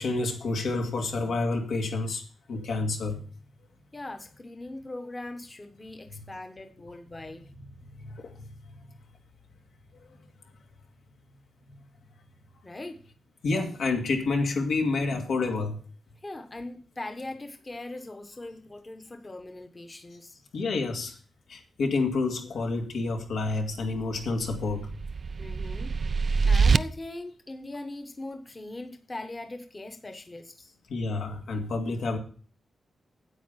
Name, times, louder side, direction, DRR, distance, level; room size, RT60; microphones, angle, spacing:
voice 1, 0.0-3.2 6.1-6.2 8.0-8.5 10.0-10.1 13.4-15.8 20.5-21.2 21.5-24.9 30.9-32.2, left 3 dB, 80° left, 2.3 m, -29 dB
voice 2, 3.9-7.4 12.6-13.0 16.2-20.4 25.4-25.9 26.5-30.7, left 2 dB, 20° left, 1.1 m, -40 dB
sound 1, 24.0-26.8, right 5 dB, 45° right, 0.4 m, -25 dB
9.3 x 8.5 x 5.8 m
wide cardioid pair, 145°, 0 cm